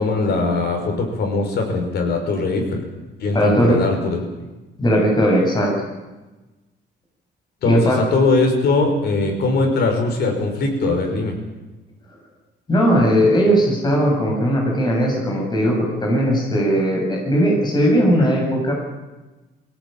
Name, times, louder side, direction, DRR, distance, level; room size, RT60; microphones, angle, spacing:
voice 1, 0.0-2.9 3.2-4.5 7.6-11.4, left 3 dB, 60° left, 3 dB, 5.8 m, -21 dB
voice 2, 3.3-3.8 4.8-5.8 7.6-8.0 12.7-18.7, equal, 20° left, -1 dB, 7.0 m, -18 dB
23.5 x 17.5 x 9.0 m, 1.1 s
cardioid pair, 165°, 19 cm